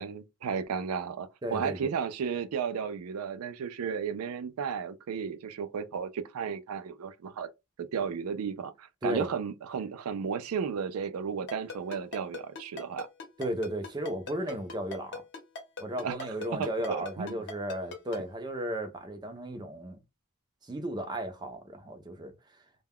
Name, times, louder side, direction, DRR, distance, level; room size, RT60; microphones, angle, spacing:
voice 1, 0.0-7.5 7.8-13.1 16.0-16.2 16.6-17.4, right 6 dB, 80° right, 0.4 m, -34 dB
voice 2, 1.4-1.9 9.0-9.3 13.4-15.2 15.8-20.0 20.6-22.4, right 1 dB, 20° right, 0.5 m, -35 dB
Ringtone, 11.5-18.2, left 4 dB, 55° left, 0.8 m, -39 dB
2.2 x 2.2 x 3.4 m
head